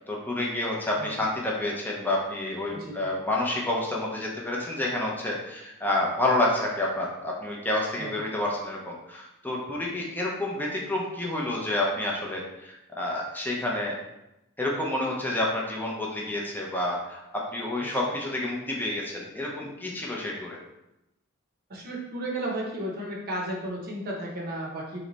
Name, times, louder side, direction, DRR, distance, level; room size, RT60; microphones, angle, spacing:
voice 1, 0.1-13.9 14.6-17.2 17.5-20.6, left 1 dB, 10° left, -3 dB, 0.6 m, -29 dB
voice 2, 21.7-25.0, right 1 dB, 45° right, -2 dB, 0.8 m, -34 dB
3.2 x 3.1 x 3.9 m, 0.91 s
head